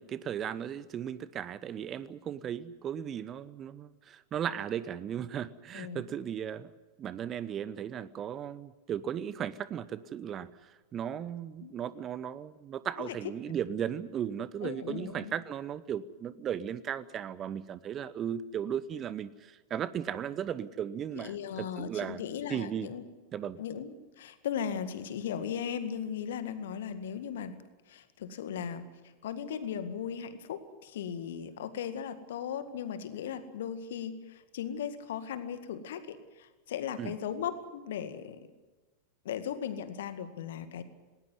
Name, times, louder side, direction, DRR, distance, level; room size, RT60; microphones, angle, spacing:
voice 1, 0.0-6.7 7.0-10.5 10.9-22.2 22.5-22.9 23.3-23.6 37.0-37.1, right 9 dB, 30° right, 18 dB, 0.9 m, -36 dB
voice 2, 14.6-15.3 21.1-23.0 23.6-27.6 27.9-28.9 29.2-38.5 39.3-40.8, left 8 dB, 60° left, 11 dB, 1.9 m, -37 dB
19.0 x 19.0 x 9.5 m, 1.2 s
figure-of-eight pair, 90°, 0 cm